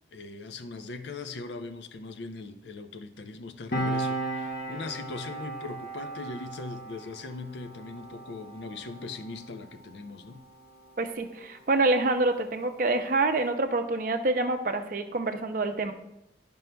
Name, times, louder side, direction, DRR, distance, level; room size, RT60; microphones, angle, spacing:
voice 1, 0.1-10.4, left 3 dB, 75° left, 9 dB, 0.5 m, -40 dB
Piano, 3.7-10.7 11.0-11.2, right 1 dB, 50° left, 0.9 m, -36 dB
voice 2, 11.0-15.9, right 2 dB, 50° right, 6 dB, 0.5 m, -26 dB
10.5 x 5.3 x 2.2 m, 0.85 s
head